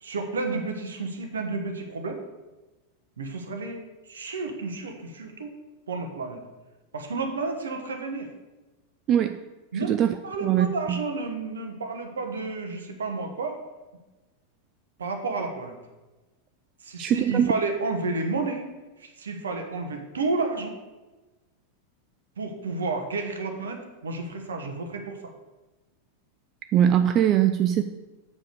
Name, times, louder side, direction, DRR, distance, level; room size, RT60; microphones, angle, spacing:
voice 1, 0.0-2.2 3.2-5.5 5.9-6.4 6.9-8.3 9.7-10.0 10.2-13.6 15.0-15.8 16.8-18.7 19.0-20.8 22.4-25.3, right 3 dB, 70° right, 5 dB, 1.2 m, -31 dB
voice 2, 10.4-11.0 17.0-17.5 26.7-27.8, right 10 dB, 35° right, 9 dB, 0.4 m, -21 dB
7.1 x 5.2 x 6.6 m, 1.2 s
figure-of-eight pair, 90°, 0 cm